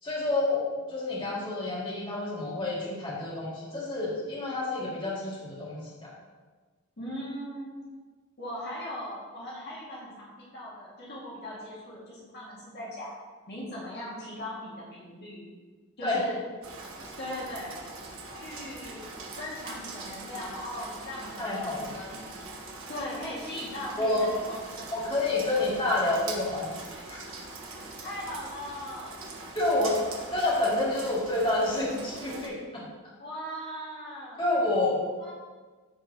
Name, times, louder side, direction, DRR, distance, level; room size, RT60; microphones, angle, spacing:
voice 1, 0.0-6.1 16.0-16.2 21.4-21.9 24.0-24.3 24.9-27.2 29.5-30.0 30.3-32.9 34.4-35.0, left 2 dB, 25° left, -7 dB, 2.5 m, -28 dB
voice 2, 7.0-7.9 8.4-13.1 13.5-15.4 16.0-16.4 17.2-17.8 18.4-19.1 19.4-22.4 22.9-25.5 28.0-29.4 33.2-34.4 35.2-35.3, equal, 50° left, -7 dB, 2.1 m, -39 dB
Rain, 16.6-32.5, right 3 dB, 75° right, 1.4 m, -42 dB
14.5 x 5.0 x 3.0 m, 1.4 s
head